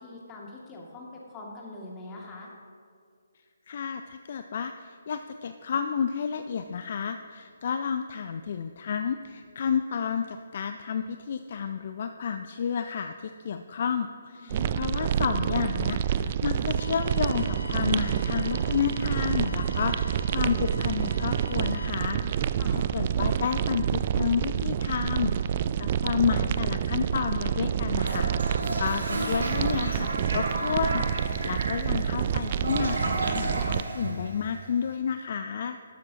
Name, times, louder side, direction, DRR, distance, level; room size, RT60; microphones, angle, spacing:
voice 1, 0.0-2.5 14.4-14.8 22.6-22.8, left 2 dB, 20° left, -2 dB, 2.2 m, -43 dB
voice 2, 3.7-35.8, left 6 dB, 45° left, 8 dB, 0.4 m, -31 dB
sound 1, 14.5-33.8, right 8 dB, 40° right, 0.3 m, -28 dB
sound 2, 16.8-21.9, left 2 dB, 90° left, 1.0 m, -45 dB
Toilet flush, 27.9-34.9, right 2 dB, 65° right, 2.2 m, -33 dB
13.0 x 12.0 x 2.9 m, 2.2 s
figure-of-eight pair, 140°, 0 cm